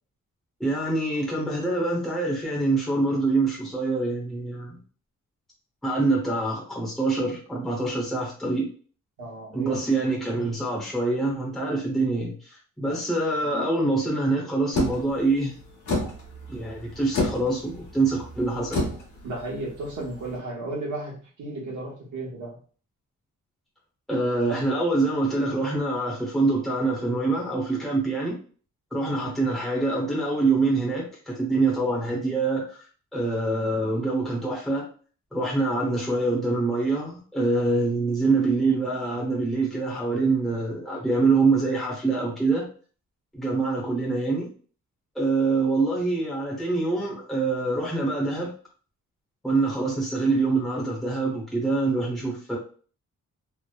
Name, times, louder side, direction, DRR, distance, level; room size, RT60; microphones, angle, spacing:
voice 1, 0.6-4.8 5.8-8.7 9.5-15.6 16.5-18.9 24.1-28.4 28.9-32.9 33.1-34.9 35.3-42.7 43.3-44.5 45.1-48.5 49.4-52.6, right 3 dB, ahead, -4 dB, 0.7 m, -25 dB
voice 2, 9.2-9.8 12.8-13.0 19.2-22.6 29.2-29.4, right 2 dB, 65° right, -2 dB, 1.0 m, -34 dB
sound 1, 14.7-20.3, left 2 dB, 60° left, 1.0 m, -31 dB
3.1 x 2.0 x 2.2 m, 0.42 s
wide cardioid pair, 175°, 33 cm